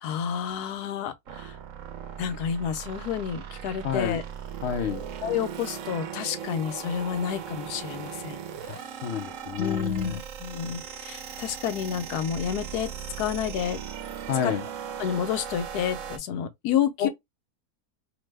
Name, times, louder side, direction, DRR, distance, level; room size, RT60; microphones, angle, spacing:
voice 1, 0.0-1.6 2.2-4.2 5.2-8.4 8.8-8.9 9.6-12.9 13.2-13.8 14.4-14.5 15.0-17.1, left 8 dB, 90° left, 1.2 m, -30 dB
sound 1, 1.3-16.2, right 8 dB, 65° right, 0.9 m, -38 dB
voice 2, 3.8-4.2 4.6-5.0 8.7-10.2 14.3-14.6 17.0-17.1, left 8 dB, 70° left, 0.6 m, -29 dB
3.0 x 2.0 x 3.3 m
omnidirectional pair, 1.6 m